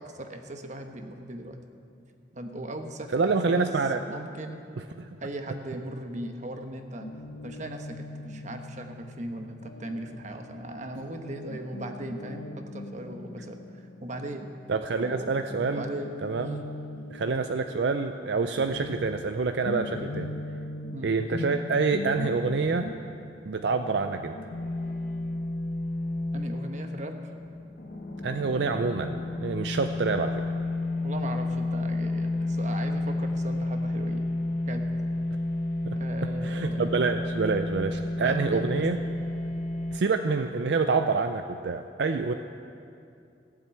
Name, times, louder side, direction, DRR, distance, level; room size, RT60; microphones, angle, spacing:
voice 1, 0.0-1.6 2.3-3.7 4.1-4.7 5.2-7.1 7.4-14.5 15.0-15.4 15.7-16.1 20.9-21.1 26.3-27.3 31.0-34.2 34.7-34.8 35.9-37.1 38.2-38.8, right 1 dB, 40° right, 5 dB, 1.1 m, -38 dB
voice 2, 3.1-4.0 4.8-5.1 14.7-15.8 16.2-16.6 17.1-20.3 21.0-22.9 23.5-24.4 28.2-30.4 35.8-36.0 36.4-39.0 39.9-42.3, right 4 dB, 70° right, 8 dB, 0.5 m, -27 dB
Guitar, 7.0-14.7 15.0-25.4, left 1 dB, 80° left, 0.8 m, -41 dB
sound 1, 24.5-40.0, left 2 dB, 50° left, 1.3 m, -31 dB
16.5 x 7.6 x 8.8 m, 2.5 s
head